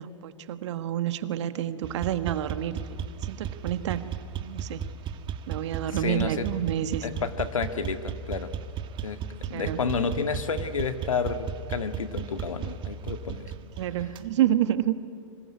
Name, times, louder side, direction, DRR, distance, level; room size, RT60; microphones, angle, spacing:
voice 1, 0.0-2.7 3.2-4.0 4.4-4.8 5.5-7.1 9.5-9.8 13.8-14.9, right 11 dB, 60° right, 11 dB, 1.6 m, -28 dB
sound 1, 1.8-14.3, right 8 dB, 30° right, 1.4 m, -35 dB
voice 2, 6.0-6.5 7.0-8.5 9.0-9.2 9.5-13.5, left 5 dB, 85° left, 9 dB, 1.8 m, -30 dB
25.5 x 22.0 x 9.6 m, 2.3 s
hypercardioid pair, 115°, 17 cm